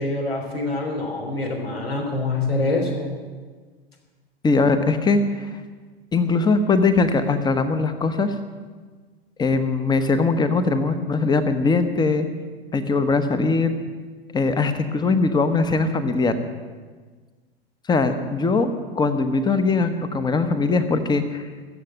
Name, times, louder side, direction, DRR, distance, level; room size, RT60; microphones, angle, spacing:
voice 1, 0.0-3.2, left 2 dB, 75° left, 1 dB, 3.7 m, -25 dB
voice 2, 4.4-5.5 6.1-8.3 9.4-12.3 12.7-13.7 14.3-16.3 17.9-21.5, left 3 dB, 15° left, 10 dB, 1.1 m, -21 dB
14.5 x 7.7 x 9.1 m, 1.5 s
figure-of-eight pair, 90°, 30 cm